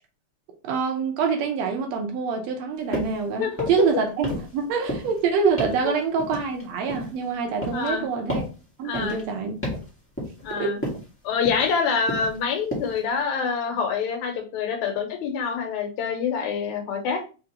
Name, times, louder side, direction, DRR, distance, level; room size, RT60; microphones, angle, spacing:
voice 1, 0.6-8.5 8.8-9.6 10.5-10.8, right 5 dB, 75° right, 1.8 m, -25 dB
sound 1, 2.9-3.2 3.5-3.9 4.2-4.6 4.9-5.2 5.6-5.8 6.2-7.2 7.6-7.9 8.3-8.6 8.9-9.2 9.6-9.9 10.2-10.5 10.8-11.1 11.4-11.8 12.1-12.4 12.7-13.0, equal, 10° left, 0.7 m, -32 dB
voice 2, 3.4-3.7 7.7-8.0 8.8-9.2 10.4-10.8 11.2-17.2, left 6 dB, 80° left, 2.3 m, -26 dB
4.9 x 3.4 x 2.9 m
omnidirectional pair, 3.3 m